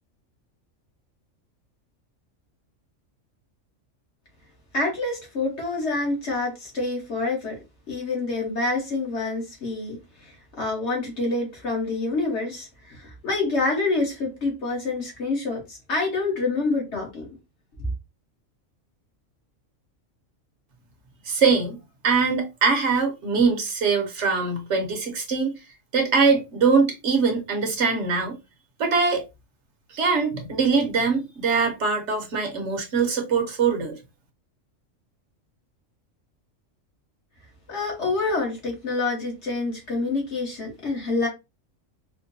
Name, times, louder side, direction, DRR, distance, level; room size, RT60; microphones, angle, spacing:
voice 1, 4.7-7.5 7.9-17.3 37.7-41.3, left 3 dB, 60° left, 1.6 m, -27 dB
voice 2, 21.3-21.8 22.0-25.5 25.9-28.4 28.8-29.2 29.9-33.9, right 5 dB, 65° right, 1.1 m, -22 dB
4.3 x 2.2 x 2.7 m
omnidirectional pair, 1.3 m